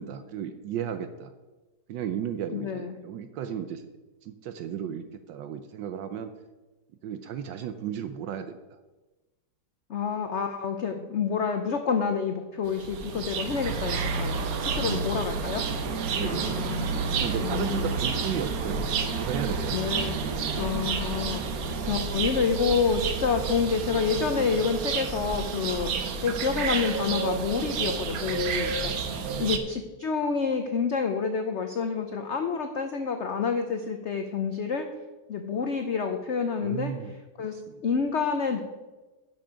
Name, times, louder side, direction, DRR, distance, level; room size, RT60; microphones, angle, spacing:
voice 1, 0.0-1.3 1.9-3.9 4.2-6.3 7.0-8.8 14.8-15.4 16.1-16.8 17.1-19.8 25.9-26.2 29.1-29.7 36.6-37.8, right 8 dB, 75° right, 10 dB, 1.3 m, -35 dB
voice 2, 2.5-2.9 9.9-15.7 16.2-16.9 17.4-17.9 19.7-20.1 20.6-25.9 26.2-28.9 29.4-34.9 35.3-36.9 37.4-37.6 37.8-38.6, left 5 dB, 60° left, 6 dB, 0.7 m, -28 dB
sound 1, 12.7-29.6, right 5 dB, 60° right, 1.1 m, -30 dB
10.5 x 6.3 x 5.1 m, 1.2 s
omnidirectional pair, 2.0 m